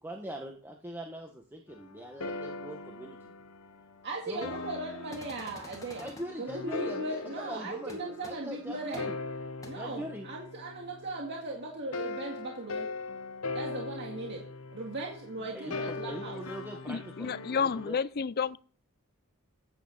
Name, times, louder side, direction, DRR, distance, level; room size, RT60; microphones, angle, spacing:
voice 1, 0.0-3.3 4.3-4.6 6.0-9.1 9.7-10.3 15.5-18.0, right 1 dB, 10° right, 1.3 m, -42 dB
sound 1, 1.7-11.4 11.9-17.9, left 3 dB, 75° left, 1.1 m, -40 dB
voice 2, 4.0-6.1 6.4-9.1 9.6-12.9 13.5-14.4 14.7-16.4, right 2 dB, 55° right, 2.1 m, -38 dB
sound 2, 5.1-6.2 7.9-8.0 8.2-8.3 8.9-9.0 9.6-9.7, left 2 dB, 15° left, 2.1 m, -48 dB
voice 3, 16.9-18.6, left 6 dB, 45° left, 0.5 m, -31 dB
15.0 x 8.8 x 4.1 m
head